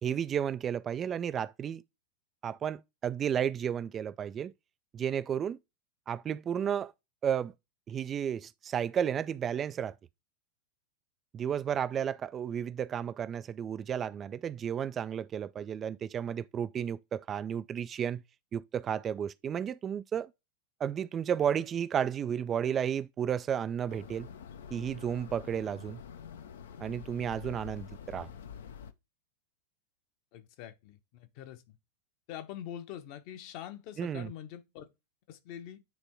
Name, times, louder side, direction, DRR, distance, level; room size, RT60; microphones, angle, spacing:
voice 1, 0.0-1.8 2.4-4.5 4.9-5.6 6.1-6.9 7.2-7.5 7.9-9.9 11.3-18.2 18.5-20.3 20.8-24.3 24.7-26.0 26.8-28.3 34.0-34.3, right 8 dB, 25° right, 0.3 m, -32 dB
sound 1, 23.9-28.9, left 7 dB, 60° left, 0.7 m, -46 dB
voice 2, 30.3-31.8 32.3-34.9 35.3-35.8, left 10 dB, 45° left, 1.0 m, -44 dB
9.3 x 3.5 x 4.6 m
figure-of-eight pair, 90°, 0 cm